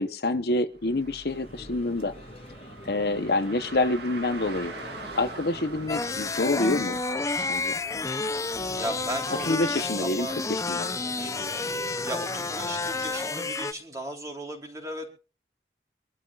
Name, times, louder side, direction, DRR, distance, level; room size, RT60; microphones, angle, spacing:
voice 1, 0.0-2.1 2.8-4.7 5.2-7.0 7.5-7.7 9.5-10.9, left 2 dB, 60° left, 11 dB, 0.8 m, -27 dB
Car, 0.7-9.3, right 4 dB, 70° right, 1.7 m, -44 dB
sound 1, 1.3-13.3, left 1 dB, 35° left, 1.8 m, -45 dB
voice 2, 5.5-5.9 8.7-10.3 11.2-11.5 12.0-15.1, right 1 dB, 20° right, 2 dB, 3.3 m, -36 dB
sound 2, 5.9-13.7, left 3 dB, 20° left, 0.5 m, -30 dB
25.0 x 12.5 x 2.4 m, 0.35 s
head